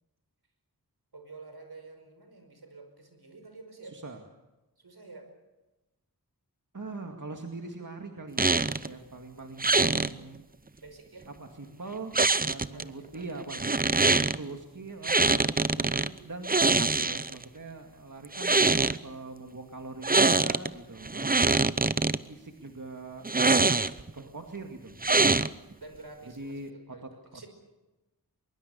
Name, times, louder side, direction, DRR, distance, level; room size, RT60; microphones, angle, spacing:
voice 1, 1.1-4.0 4.8-5.3 10.8-11.3 12.7-13.3 25.8-27.5, right 3 dB, 80° right, 6 dB, 5.3 m, -49 dB
voice 2, 6.7-10.4 10.7-10.8 11.3-12.1 12.4-18.6 19.0-21.7 22.3-23.9 24.1-25.0 26.4-27.0 27.3-27.4, right 3 dB, 55° right, 3 dB, 2.2 m, -42 dB
sound 1, 8.4-8.9 9.6-10.1 12.1-12.8 13.5-14.4 15.0-16.1 16.4-17.4 18.2-19.0 20.0-20.7 21.0-22.2 23.2-24.1 25.0-25.7, right 3 dB, 25° right, 0.7 m, -24 dB
23.5 x 22.5 x 7.0 m, 1.0 s
wide cardioid pair, 60°, 38 cm